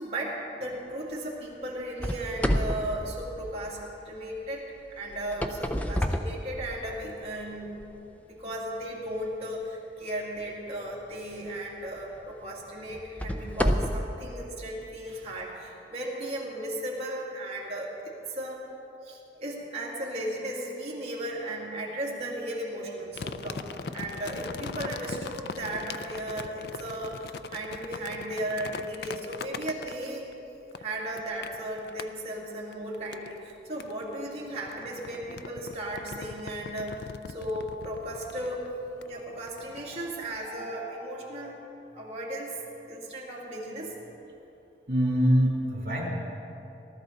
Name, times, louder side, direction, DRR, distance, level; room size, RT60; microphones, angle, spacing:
voice 1, 0.0-7.8 8.2-18.6 19.0-23.7 23.9-30.3 30.8-38.7 39.1-41.6 41.9-42.6 42.9-43.9, right 1 dB, 35° right, -5 dB, 2.5 m, -36 dB
sound 1, 2.0-4.0 5.1-7.1 7.7-7.8 8.5-8.6 11.2-11.4 12.0-12.1 12.9-14.2, equal, 10° left, 0.5 m, -29 dB
sound 2, 23.1-30.3 30.7-32.1 32.7-33.5 33.8-40.5, left 4 dB, 70° left, 0.5 m, -41 dB
sound 3, 39.1-39.2 39.8-41.3, equal, 40° left, 3.4 m, -48 dB
voice 2, 44.9-46.1, equal, 60° right, -3 dB, 3.3 m, -24 dB
18.5 x 13.0 x 4.0 m, 2.9 s
head